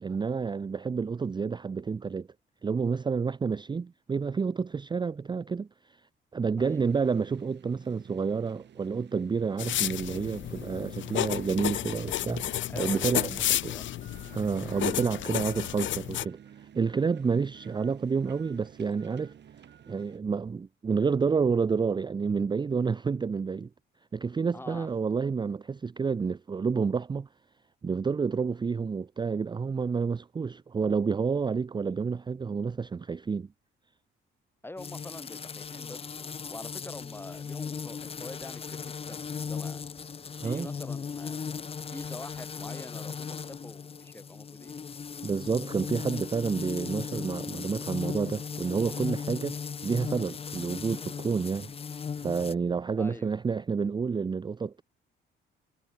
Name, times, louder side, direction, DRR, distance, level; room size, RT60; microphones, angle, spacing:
voice 1, 0.0-2.3 2.6-6.0 6.3-13.4 13.6-13.7 14.3-19.4 19.9-23.7 24.1-27.3 27.8-33.5 40.4-40.7 45.2-49.6 49.8-51.7 52.2-54.8, right 5 dB, 25° right, 0.5 m, -29 dB
voice 2, 6.6-7.0 12.7-13.9 24.5-24.9 34.6-39.8 40.4-41.4 41.9-44.7 53.0-53.3, left 2 dB, 10° left, 1.6 m, -45 dB
sound 1, 6.6-20.2, right 9 dB, 60° right, 5.4 m, -52 dB
sound 2, 9.6-16.2, left 13 dB, 70° left, 1.0 m, -31 dB
sound 3, 34.8-52.5, left 6 dB, 30° left, 0.6 m, -37 dB
cardioid pair, 90°, 20 cm